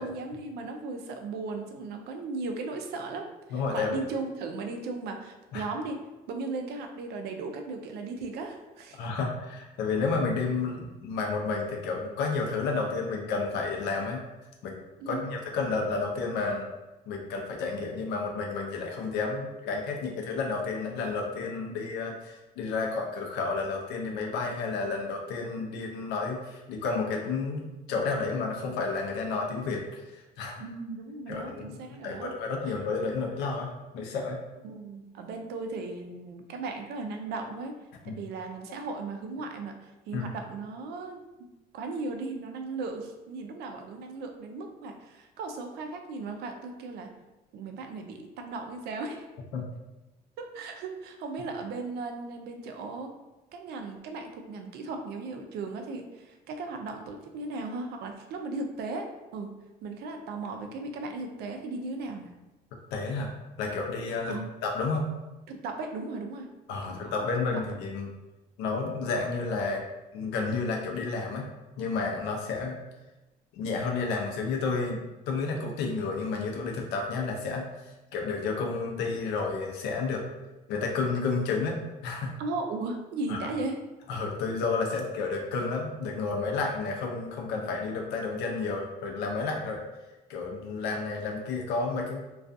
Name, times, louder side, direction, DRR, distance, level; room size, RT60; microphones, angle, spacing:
voice 1, 0.0-6.0 6.3-9.1 15.0-15.3 21.7-21.9 30.6-32.3 32.6-32.7 34.6-37.7 38.0-41.5 41.7-47.1 47.5-49.3 50.4-53.1 53.5-59.5 59.8-62.3 64.3-64.5 65.5-66.5 67.0-67.3 82.4-83.8, right 3 dB, 75° right, 4 dB, 0.4 m, -37 dB
voice 2, 3.5-4.1 5.5-5.7 9.0-14.2 14.6-14.8 15.1-16.7 17.1-30.6 31.3-31.8 32.0-34.4 38.1-38.2 40.1-40.3 49.5-49.6 62.9-64.4 64.6-65.1 66.7-68.1 68.6-69.8 70.1-71.5 71.8-72.8 73.5-75.0 75.3-80.2 80.7-81.8 82.0-82.3 83.3-83.5 84.1-89.8 90.3-92.3, left 4 dB, 90° left, 1 dB, 0.5 m, -31 dB
2.3 x 2.3 x 2.5 m, 1.1 s
cardioid pair, 110°, 17 cm